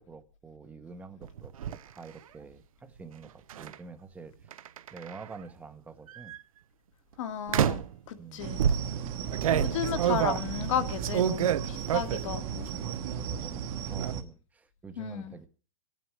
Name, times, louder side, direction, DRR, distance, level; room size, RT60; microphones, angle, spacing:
voice 1, 0.0-4.7 4.9-6.4 8.2-8.5 13.2-15.5, right 4 dB, 10° right, 0.9 m, -47 dB
sound 1, 1.2-1.8 3.5-3.7 4.5-5.3 6.1-6.4 7.5-8.0 8.6-12.3 12.7-13.3 13.5-14.1, right 9 dB, 80° right, 0.8 m, -29 dB
voice 2, 7.2-8.6 9.5-12.8 15.0-15.3, left 9 dB, 60° left, 1.9 m, -34 dB
sound 2, 8.4-14.2, right 8 dB, 35° right, 1.2 m, -35 dB
26.0 x 9.3 x 3.2 m
hypercardioid pair, 150°, 18 cm